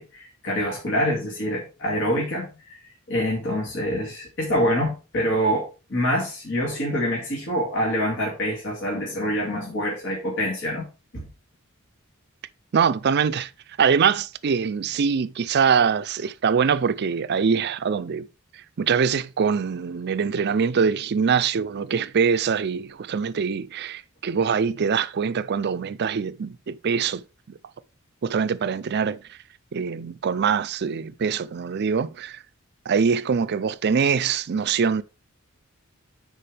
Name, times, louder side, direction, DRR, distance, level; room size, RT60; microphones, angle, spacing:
voice 1, 0.0-2.5 3.1-10.8 11.1-11.3, equal, 60° left, 2.4 m, -25 dB
voice 2, 12.7-13.5 13.8-18.3 18.8-27.6 28.2-29.4 29.7-32.4 32.9-35.0, right 6 dB, 50° right, 0.4 m, -23 dB
10.0 x 4.6 x 3.3 m
head